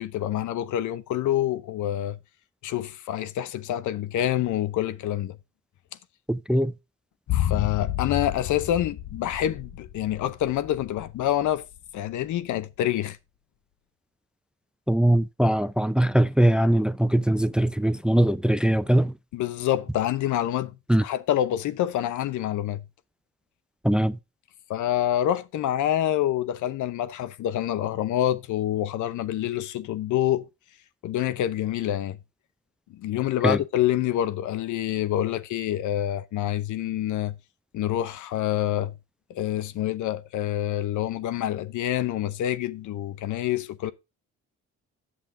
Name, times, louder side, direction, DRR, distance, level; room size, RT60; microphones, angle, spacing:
voice 1, 0.0-2.2 2.6-5.4 7.3-11.6 11.9-13.2 19.3-22.8 24.7-30.5 31.0-32.2 32.9-37.4 37.7-38.9 39.3-43.9, left 12 dB, 80° left, 0.8 m, -27 dB
voice 2, 6.3-6.7 14.9-19.1 20.9-21.0 23.8-24.2 33.4-33.6, right 1 dB, 5° right, 0.4 m, -21 dB
sound 1, 7.3-11.5 11.8-11.9, left 12 dB, 60° left, 1.2 m, -30 dB
8.5 x 7.5 x 3.6 m
cardioid pair, 90°, 30 cm